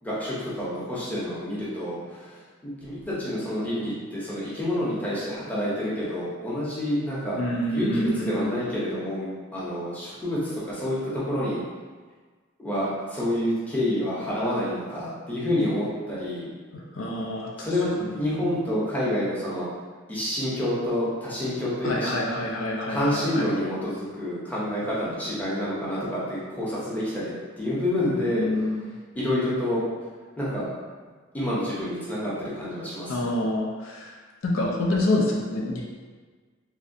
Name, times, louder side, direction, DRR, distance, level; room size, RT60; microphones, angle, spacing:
voice 1, 0.0-7.4 7.7-11.6 12.6-16.5 17.6-19.7 20.1-22.2 22.9-28.5 29.1-29.8 30.4-30.7 31.3-33.3, left 1 dB, 10° left, -9 dB, 0.7 m, -28 dB
voice 2, 7.4-8.5 16.7-17.7 18.0-18.1 21.8-23.5 28.4-28.9 33.1-34.2 34.4-35.8, left 1 dB, 70° left, -2 dB, 0.5 m, -27 dB
3.1 x 2.6 x 2.6 m, 1.5 s
head